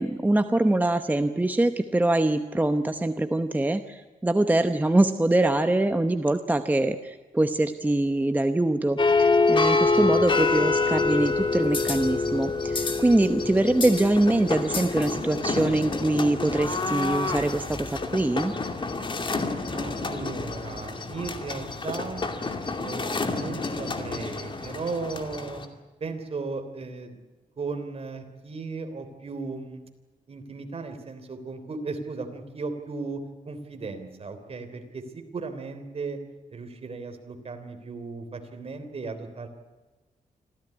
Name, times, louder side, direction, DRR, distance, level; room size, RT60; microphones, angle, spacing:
voice 1, 0.0-18.6, right 1 dB, 10° right, 8 dB, 0.8 m, -24 dB
sound 1, 9.0-25.6, left 3 dB, 35° left, 2.5 m, -27 dB
voice 2, 9.9-10.6 19.7-22.3 22.8-25.6 26.0-27.2 27.6-29.9 30.3-36.2 36.5-39.5, right 4 dB, 45° right, 7 dB, 3.4 m, -36 dB
26.0 x 15.5 x 9.7 m, 1.3 s
wide cardioid pair, 130°, 14 cm